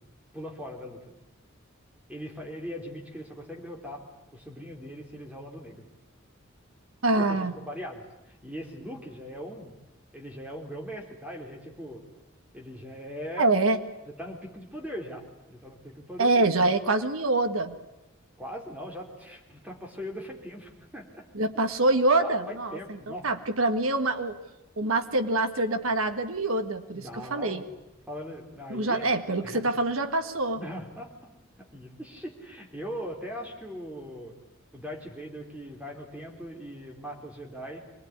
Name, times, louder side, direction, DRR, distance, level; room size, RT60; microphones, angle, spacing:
voice 1, 0.3-1.0 2.1-4.0 4.3-5.8 7.2-9.8 10.1-12.0 12.5-13.5 14.2-16.4 18.4-21.2 22.2-23.3 26.9-27.6 28.1-29.1 29.4-29.7 30.6-31.1 31.6-34.3 34.7-37.8, equal, 5° right, 1 dB, 4.0 m, -40 dB
voice 2, 7.0-7.5 13.4-13.8 16.2-17.7 21.3-22.8 23.2-24.4 24.8-27.6 28.7-30.6, right 2 dB, 85° right, 7 dB, 1.7 m, -25 dB
24.5 x 20.0 x 9.7 m, 1.0 s
head